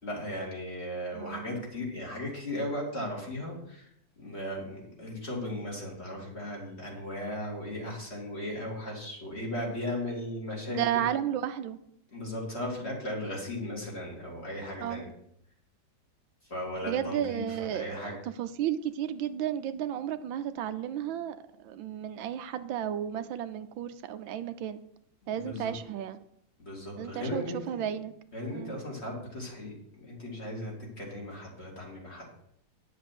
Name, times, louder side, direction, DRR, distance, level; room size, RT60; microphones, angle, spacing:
voice 1, 0.0-3.9 4.2-11.0 12.1-15.1 16.5-18.1 25.3-25.7 26.6-27.8 28.3-32.3, left 1 dB, 35° left, -2 dB, 3.0 m, -37 dB
voice 2, 1.1-1.6 10.8-11.8 14.8-15.1 16.8-24.8 25.3-26.2 27.0-28.1 28.5-28.8, right 10 dB, 85° right, 10 dB, 1.5 m, -33 dB
10.5 x 6.6 x 6.0 m, 0.72 s
omnidirectional pair, 2.1 m